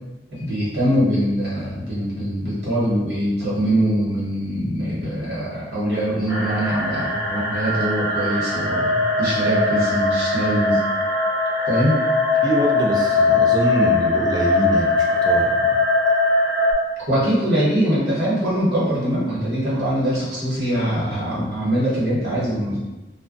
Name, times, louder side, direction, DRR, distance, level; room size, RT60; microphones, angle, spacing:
voice 1, 0.3-10.8 11.7-12.0 17.0-22.8, equal, 65° right, -8 dB, 1.2 m, -22 dB
sound 1, 6.3-16.7, left 2 dB, 10° right, 0.9 m, -20 dB
voice 2, 12.4-15.8, right 1 dB, 25° right, -2 dB, 0.3 m, -24 dB
2.2 x 2.1 x 3.8 m, 1.1 s
head